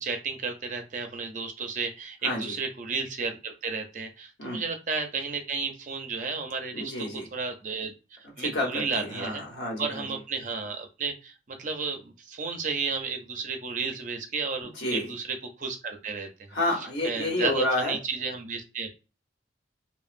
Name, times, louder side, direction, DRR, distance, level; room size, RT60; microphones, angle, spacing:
voice 1, 0.0-9.4 9.8-16.5 17.0-18.9, right 4 dB, 45° right, 5 dB, 0.5 m, -33 dB
voice 2, 2.2-2.6 4.4-4.6 6.7-7.3 8.4-10.2 14.7-15.1 16.5-18.0, left 1 dB, 65° left, -1 dB, 1.0 m, -30 dB
2.9 x 2.0 x 2.5 m, 0.31 s
head